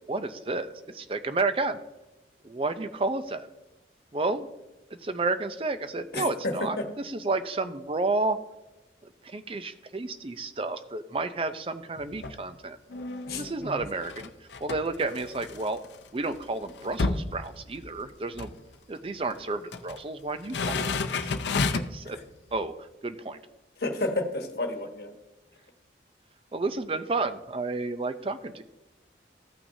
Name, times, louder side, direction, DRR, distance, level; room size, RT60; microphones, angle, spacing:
voice 1, 0.1-1.8 2.4-3.5 4.1-4.5 4.9-8.4 9.0-12.8 13.3-15.8 16.1-18.5 18.9-21.3 21.9-22.2 22.5-23.4 26.5-28.6, right 3 dB, 30° right, 11 dB, 0.4 m, -31 dB
voice 2, 6.1-6.7 13.3-13.4 23.8-25.1, left 2 dB, 60° left, 4 dB, 1.2 m, -30 dB
sound 1, 12.0-12.4 12.9-16.0 16.3-16.4 16.7-18.1 18.3-18.6 19.4-20.0 20.4-22.0 22.5-22.6, left 3 dB, 75° left, 0.6 m, -31 dB
14.5 x 5.9 x 2.7 m, 1.0 s
head